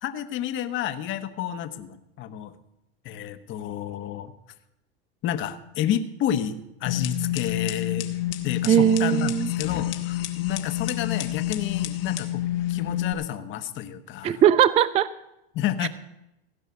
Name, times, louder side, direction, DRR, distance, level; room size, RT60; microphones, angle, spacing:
voice 1, 0.0-2.5 3.0-4.3 5.2-6.5 6.8-8.1 8.4-12.4 12.7-14.4 15.5-15.9, left 10 dB, 40° left, 9 dB, 1.1 m, -30 dB
sound 1, 6.9-13.1, left 14 dB, 75° left, 1.5 m, -28 dB
voice 2, 8.7-9.5 14.2-15.1 15.8-15.9, right 10 dB, 20° right, 17 dB, 0.4 m, -19 dB
16.5 x 5.5 x 9.5 m, 0.88 s
supercardioid pair, 115°, 29 cm